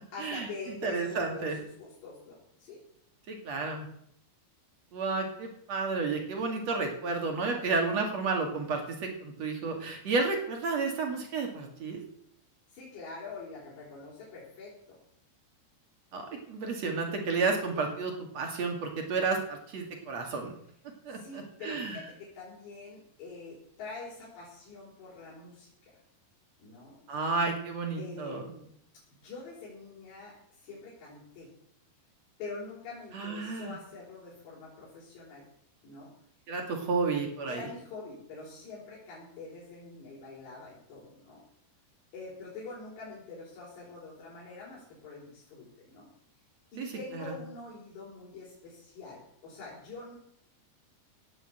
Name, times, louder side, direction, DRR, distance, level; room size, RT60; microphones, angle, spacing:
voice 1, 0.1-2.8 12.7-15.0 21.1-25.7 26.6-27.0 28.0-28.7 29.2-31.5 32.4-35.4 35.8-36.1 37.5-41.4 42.1-46.1 46.7-50.2, left 3 dB, 75° left, -6 dB, 6.8 m, -45 dB
voice 2, 0.8-1.6 3.3-3.9 4.9-12.0 16.1-16.2 16.5-20.5 21.0-22.0 27.1-28.5 33.1-33.7 36.5-37.6 46.8-47.4, right 4 dB, 45° right, 3 dB, 2.8 m, -31 dB
17.0 x 8.0 x 8.1 m, 0.71 s
omnidirectional pair, 5.0 m